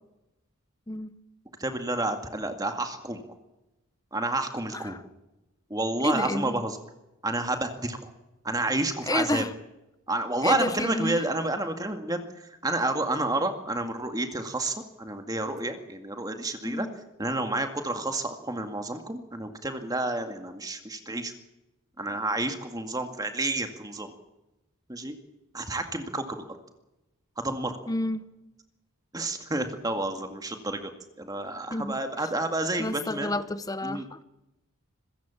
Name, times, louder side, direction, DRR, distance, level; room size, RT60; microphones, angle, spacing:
voice 1, 1.6-3.2 4.1-5.0 5.7-6.8 7.2-8.1 8.4-9.4 10.1-16.9 17.2-21.3 22.0-24.1 24.9-25.1 25.5-26.5 27.4-27.8 29.1-33.3 33.8-34.0, right 2 dB, 15° right, 2.1 m, -30 dB
voice 2, 6.0-6.6 9.1-9.5 10.4-11.2 16.6-17.0 27.9-28.2 31.7-32.3 32.8-34.2, left 1 dB, 15° left, 0.8 m, -30 dB
26.5 x 15.5 x 7.3 m
head